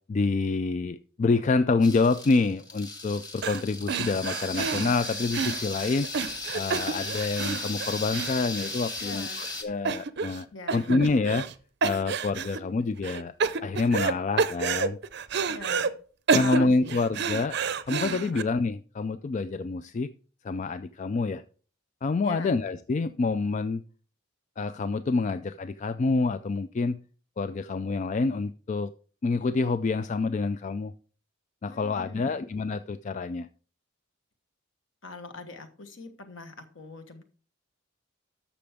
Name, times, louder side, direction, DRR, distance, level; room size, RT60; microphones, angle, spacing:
voice 1, 0.1-6.1 6.5-10.5 10.7-11.5 11.8-13.3 13.6-15.0 16.3-17.6 17.9-20.1 20.4-21.4 22.0-23.8 24.6-27.0 27.4-28.9 29.2-30.9 31.6-33.5, left 3 dB, 35° left, 12 dB, 0.3 m, -27 dB
sound 1, 1.8-9.6, left 2 dB, 20° left, 1.4 m, -36 dB
sound 2, 3.4-3.6 3.9-9.1 9.4-9.5 9.8-10.4 10.7-11.5 11.8-12.6 13.0-14.1 14.4-15.9 16.3-18.4, right 5 dB, 55° right, 0.6 m, -29 dB
voice 2, 9.0-9.4 10.5-11.0 15.5-15.9 16.4-17.0 18.3-18.4 22.2-22.5 31.7-32.4 35.0-37.2, left 2 dB, 65° left, 7 dB, 1.4 m, -42 dB
12.0 x 6.9 x 3.5 m, 0.40 s
head